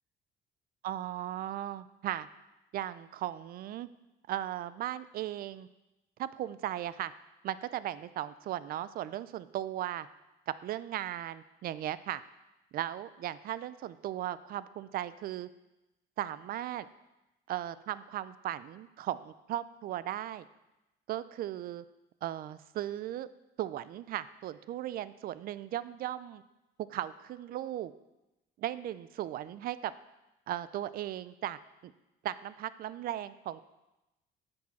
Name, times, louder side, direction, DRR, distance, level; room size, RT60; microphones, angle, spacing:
voice 1, 0.8-2.3 2.7-3.9 4.3-5.7 6.2-7.1 7.4-10.1 10.5-12.2 12.7-15.5 16.2-16.9 17.5-20.4 21.1-21.8 22.2-23.3 23.6-26.4 26.9-27.9 28.6-29.9 30.5-31.9 32.2-33.7, right 12 dB, 60° right, 16 dB, 0.5 m, -37 dB
8.7 x 6.2 x 5.8 m, 0.99 s
cardioid pair, 110°, 17 cm